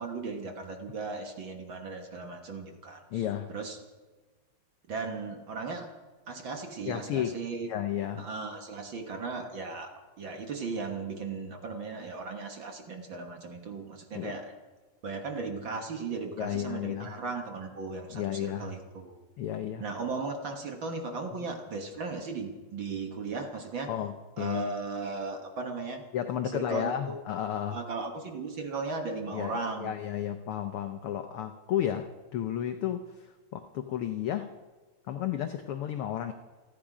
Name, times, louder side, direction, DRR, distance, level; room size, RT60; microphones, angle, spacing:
voice 1, 0.0-3.2 3.5-3.8 4.9-5.9 6.3-7.7 8.2-14.5 15.0-19.2 19.8-23.9 24.4-26.0 26.5-27.2 27.7-29.9, right 4 dB, 50° right, 4 dB, 1.7 m, -36 dB
voice 2, 3.1-3.5 6.9-7.4 7.7-8.3 14.1-14.3 16.4-17.1 18.1-18.7 19.4-19.8 23.9-24.7 26.1-27.8 29.3-34.5 35.1-36.3, left 10 dB, 80° left, 7 dB, 1.2 m, -33 dB
28.5 x 10.0 x 5.0 m, 1.3 s
omnidirectional pair, 3.4 m